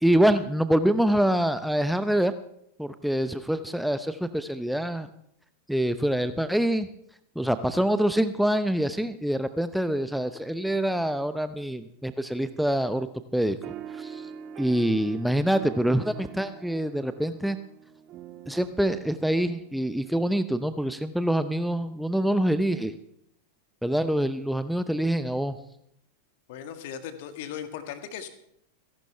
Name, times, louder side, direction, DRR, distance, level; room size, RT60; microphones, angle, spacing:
voice 1, 0.0-2.3 2.8-5.1 5.7-6.9 7.4-13.1 13.3-13.6 13.9-14.3 14.6-17.6 18.5-22.9 23.8-25.6, right 1 dB, ahead, 11 dB, 0.7 m, -25 dB
sound 1, 13.6-20.5, right 8 dB, 35° right, 1.0 m, -44 dB
voice 2, 26.5-28.3, left 9 dB, 50° left, 9 dB, 1.7 m, -37 dB
27.5 x 11.5 x 3.3 m, 0.73 s
figure-of-eight pair, 90°, 0 cm